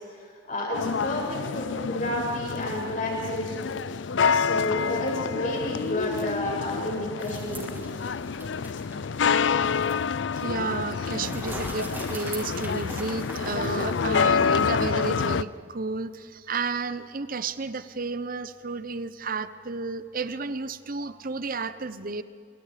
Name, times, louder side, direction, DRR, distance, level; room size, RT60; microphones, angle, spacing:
voice 1, 0.5-4.0 4.3-7.6, left 1 dB, 45° left, -1 dB, 7.1 m, -31 dB
sound 1, 0.7-15.4, left 6 dB, 75° left, 0.5 m, -28 dB
sound 2, 7.2-9.4 9.8-9.9 11.2-14.9, right 1 dB, 10° right, 7.8 m, -40 dB
voice 2, 10.3-22.2, right 4 dB, 50° right, 13 dB, 0.9 m, -32 dB
28.5 x 28.0 x 5.1 m, 2.4 s
head